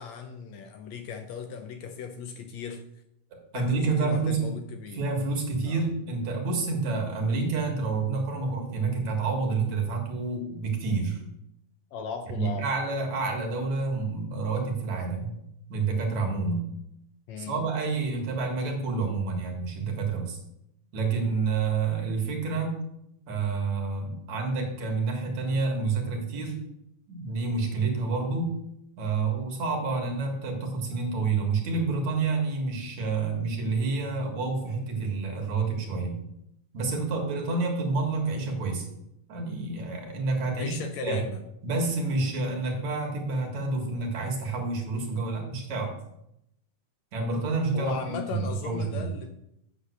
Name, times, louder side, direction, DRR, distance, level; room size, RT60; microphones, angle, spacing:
voice 1, 0.0-2.8 3.5-5.1 5.7-5.8 11.9-12.7 17.3-17.6 40.5-41.4 47.7-49.3, left 6 dB, 70° left, 6 dB, 1.8 m, -37 dB
voice 2, 3.5-4.4 4.9-11.2 12.3-15.3 15.7-16.7 17.4-20.4 20.9-22.8 23.3-26.6 27.1-28.6 29.0-36.2 36.7-38.9 39.3-40.7 41.0-41.2 41.6-46.0 47.1-49.1, right 4 dB, 65° right, 2 dB, 3.0 m, -28 dB
8.1 x 7.8 x 6.6 m, 0.80 s
omnidirectional pair, 3.6 m